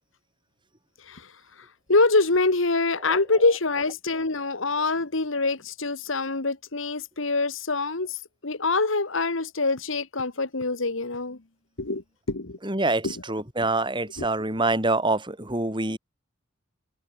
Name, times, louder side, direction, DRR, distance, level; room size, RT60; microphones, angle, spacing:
voice 1, 1.9-11.4 11.8-12.6 13.0-13.1 14.2-14.3, left 3 dB, 70° left, 1.7 m, -25 dB
voice 2, 3.0-3.4 12.6-16.0, right 2 dB, 25° right, 5.0 m, -26 dB
head